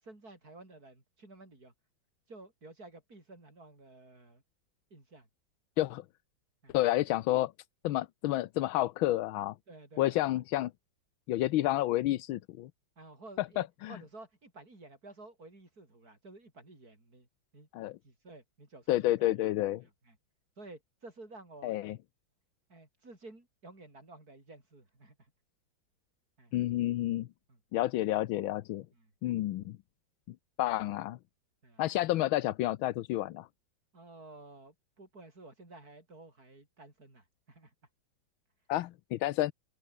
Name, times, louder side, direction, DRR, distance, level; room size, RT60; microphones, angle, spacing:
voice 1, 0.0-1.7 2.3-4.4 4.9-5.3 6.6-6.8 9.7-10.3 13.0-17.3 17.5-17.7 18.0-19.3 19.8-20.2 20.6-21.8 22.7-25.3 26.4-26.5 27.5-27.6 28.9-29.4 31.6-31.8 33.9-37.7, right 2 dB, 45° right, 6.9 m, -53 dB
voice 2, 6.7-7.5 7.8-9.5 10.0-10.7 11.3-12.7 13.4-14.0 17.7-18.0 18.9-19.8 21.6-22.0 26.5-27.3 27.7-28.8 29.2-29.8 30.6-31.2 31.8-33.5 38.7-39.5, left 15 dB, 80° left, 1.5 m, -30 dB
open air
omnidirectional pair, 2.2 m